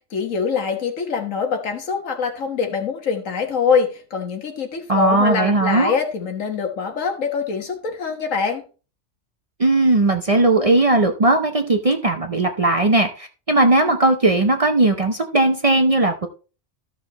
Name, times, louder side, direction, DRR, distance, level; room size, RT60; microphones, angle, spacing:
voice 1, 0.0-8.6, left 5 dB, 90° left, 4 dB, 1.7 m, -24 dB
voice 2, 4.9-6.0 9.6-16.3, right 2 dB, 35° right, 5 dB, 0.6 m, -18 dB
13.5 x 5.9 x 3.0 m, 0.35 s
omnidirectional pair, 1.3 m